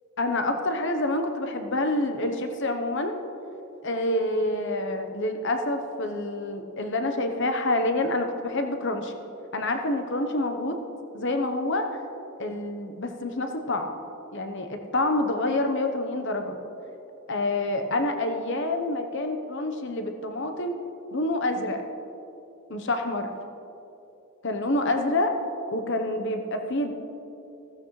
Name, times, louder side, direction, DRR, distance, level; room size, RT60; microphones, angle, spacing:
voice 1, 0.2-3.1 3.8-9.1 9.5-10.8 11.1-11.9 12.4-13.9 14.3-16.6 17.3-20.8 21.1-21.8 22.7-23.3 24.4-25.3 25.7-26.9, left 2 dB, 55° left, 5 dB, 1.0 m, -27 dB
15.5 x 14.5 x 3.2 m, 2.9 s
head